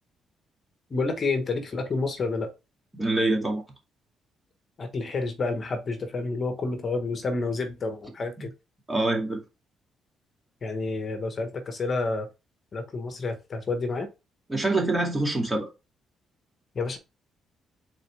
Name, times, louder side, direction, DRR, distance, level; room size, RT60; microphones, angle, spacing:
voice 1, 0.9-2.5 4.8-8.5 10.6-12.3 12.7-14.1 16.7-17.0, left 3 dB, 40° left, 1.4 m, -29 dB
voice 2, 2.9-3.6 8.4-8.5 8.9-9.4 14.5-15.7, right 2 dB, 15° right, 2.2 m, -25 dB
6.5 x 4.2 x 3.5 m
cardioid pair, 90°, 0 cm